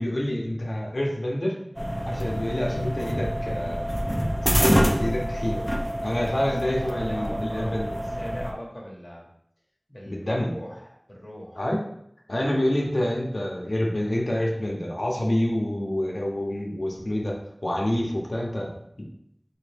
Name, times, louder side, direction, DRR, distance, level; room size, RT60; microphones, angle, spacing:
voice 1, 0.0-1.6 2.1-3.8 4.5-5.6 6.0-7.9 10.1-10.5 11.6-11.8 12.3-17.4 17.6-18.8, left 1 dB, 75° left, -2 dB, 0.7 m, -27 dB
sound 1, 1.8-8.5, equal, 5° right, 0.5 m, -26 dB
voice 2, 6.1-9.3 9.9-11.6, equal, 40° left, -3 dB, 0.9 m, -40 dB
3.7 x 2.7 x 3.3 m, 0.73 s
wide cardioid pair, 40°, 0 cm